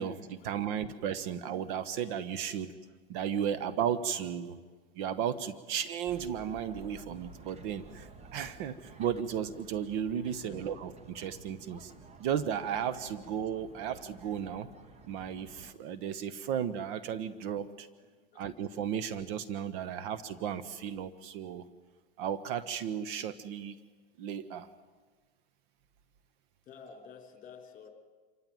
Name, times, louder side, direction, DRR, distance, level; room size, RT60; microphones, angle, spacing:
voice 1, 0.0-2.7 3.1-4.6 4.9-11.9 12.2-14.7 15.1-17.9 18.3-21.7 22.2-23.8 24.2-24.7, right 8 dB, 60° right, 13 dB, 1.2 m, -34 dB
sound 1, 6.1-15.7, right 4 dB, 20° right, 1.1 m, -53 dB
voice 2, 10.2-10.8 18.0-18.4 26.7-27.9, left 6 dB, 25° left, 4 dB, 4.0 m, -51 dB
27.0 x 15.0 x 9.2 m, 1.4 s
supercardioid pair, 125°, 30 cm